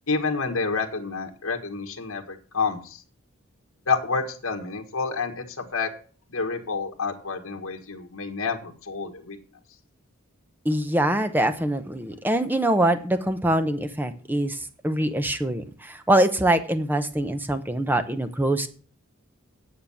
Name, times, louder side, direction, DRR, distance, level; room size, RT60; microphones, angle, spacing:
voice 1, 0.1-3.0 3.9-5.9 6.3-9.4, left 4 dB, 70° left, 3 dB, 1.6 m, -29 dB
voice 2, 10.6-18.7, right 1 dB, 10° right, 10 dB, 0.7 m, -24 dB
9.3 x 6.5 x 7.2 m, 0.41 s
head